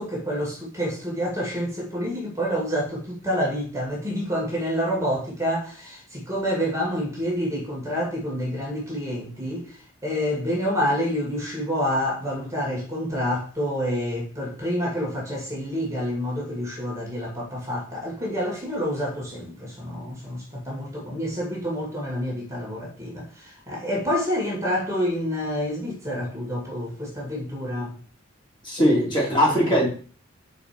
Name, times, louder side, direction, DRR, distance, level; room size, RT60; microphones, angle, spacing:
voice 1, 0.0-28.0 28.8-29.0, equal, 15° right, -3 dB, 2.2 m, -28 dB
voice 2, 28.6-29.9, equal, 25° left, -4 dB, 2.7 m, -20 dB
5.1 x 4.6 x 6.0 m, 0.39 s
head